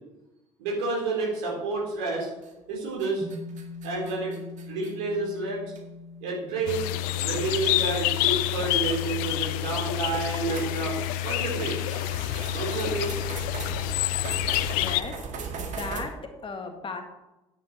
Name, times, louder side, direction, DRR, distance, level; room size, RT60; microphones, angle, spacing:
voice 1, 0.6-2.3 2.7-3.3 3.8-4.4 4.7-5.6 6.2-6.9 7.2-10.9 11.2-11.8 12.5-13.1, right 3 dB, 65° right, -3 dB, 4.2 m, -29 dB
sound 1, 2.4-2.7 3.0-4.9 5.8-5.9 6.5-6.6 7.9-8.0 9.8-9.9 10.5-16.0, right 5 dB, 50° right, 1.9 m, -38 dB
sound 2, 3.2-11.7, left 2 dB, ahead, 3.0 m, -44 dB
sound 3, 6.7-15.0, left 14 dB, 60° left, 0.5 m, -28 dB
voice 2, 14.7-17.0, left 4 dB, 30° left, 5 dB, 1.9 m, -37 dB
9.9 x 9.3 x 4.5 m, 1.0 s
figure-of-eight pair, 55°, 17 cm